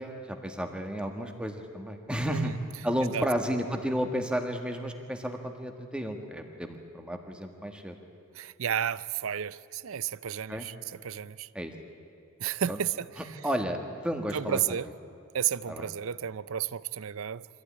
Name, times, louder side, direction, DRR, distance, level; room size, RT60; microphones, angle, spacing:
voice 1, 0.0-2.5 2.8-8.0 10.5-10.7 11.5-11.7 12.7-12.8 13.2-14.6 15.7-15.9, equal, 5° right, 1.6 m, -32 dB
voice 2, 8.4-10.7 11.0-11.5 12.4-13.1 14.3-14.9 15.3-17.5, right 9 dB, 70° right, 0.5 m, -32 dB
24.5 x 15.5 x 9.8 m
head